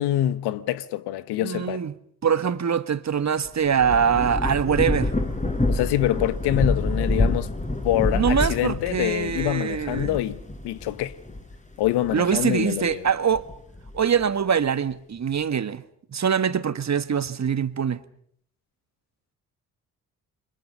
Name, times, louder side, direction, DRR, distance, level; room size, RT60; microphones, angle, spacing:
voice 1, 0.0-1.8 5.7-7.5 7.8-10.4 10.6-11.1 11.8-13.1, left 13 dB, 70° left, 1.5 m, -25 dB
voice 2, 1.4-1.9 2.2-5.1 8.1-10.2 12.1-13.5 13.9-15.8 16.1-18.0, right 7 dB, 40° right, 1.7 m, -23 dB
Thunder / Rain, 3.5-12.4 12.9-14.2, left 2 dB, 15° left, 5.8 m, -27 dB
29.0 x 26.0 x 5.6 m
hypercardioid pair, 45°, 42 cm